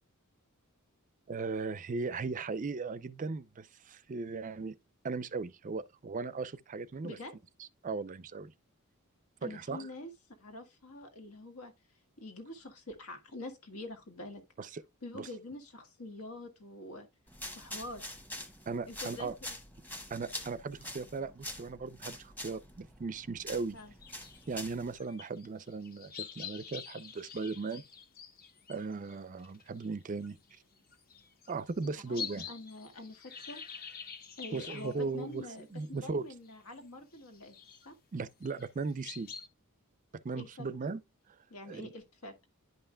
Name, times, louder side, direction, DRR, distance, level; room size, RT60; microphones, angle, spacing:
voice 1, 1.3-4.8 5.0-7.2 7.6-8.5 9.4-9.9 14.6-14.8 15.1-15.3 18.7-19.3 20.1-23.8 24.5-27.8 28.7-30.4 31.5-32.5 34.5-36.3 38.1-39.3 40.2-41.0 41.7-41.9, right 4 dB, 35° right, 0.4 m, -37 dB
voice 2, 7.0-7.3 9.4-10.1 10.4-11.7 12.2-14.4 15.0-17.1 17.6-18.1 18.9-19.3 23.7-23.9 31.8-33.6 34.4-37.6 37.9-38.0 40.4-40.7 41.5-42.4, left 2 dB, 80° left, 1.8 m, -45 dB
sound 1, 17.3-24.9, left 1 dB, 10° left, 1.0 m, -45 dB
sound 2, 23.8-36.1 36.4-36.8 37.1-37.9 38.3-39.5, left 6 dB, 40° left, 1.1 m, -47 dB
10.5 x 5.6 x 2.2 m
head